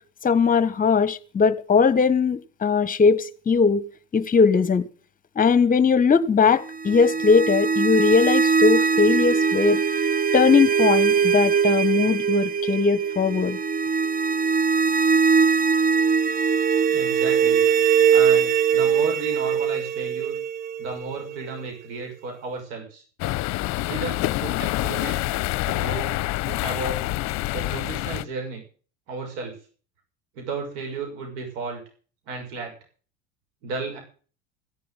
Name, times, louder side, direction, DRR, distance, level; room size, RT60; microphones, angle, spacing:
voice 1, 0.2-3.9 4.1-4.8 5.4-9.8 10.3-13.6, left 5 dB, 25° left, 1.4 m, -20 dB
sound 1, 6.7-21.6, right 6 dB, 25° right, 0.9 m, -21 dB
voice 2, 16.8-17.6 18.1-20.3 20.8-23.0 23.9-25.3 25.7-26.1 26.5-27.0 27.5-28.6 29.1-29.5 30.3-31.8 32.3-32.7 33.6-34.0, right 4 dB, 75° right, 6.2 m, -33 dB
sound 2, 23.2-28.2, left 18 dB, 55° left, 0.7 m, -26 dB
15.5 x 7.6 x 9.1 m
supercardioid pair, 95°, 34 cm